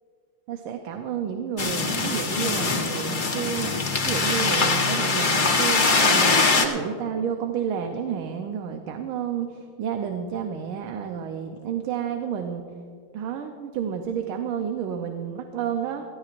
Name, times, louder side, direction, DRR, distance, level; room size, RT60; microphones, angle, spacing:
voice 1, 0.5-3.7 4.1-9.5 9.8-12.6 13.1-16.0, right 8 dB, 75° right, 5 dB, 1.6 m, -30 dB
sound 1, 1.6-6.7, left 4 dB, 40° left, 0.7 m, -22 dB
20.5 x 15.0 x 2.5 m, 2.2 s
omnidirectional pair, 2.4 m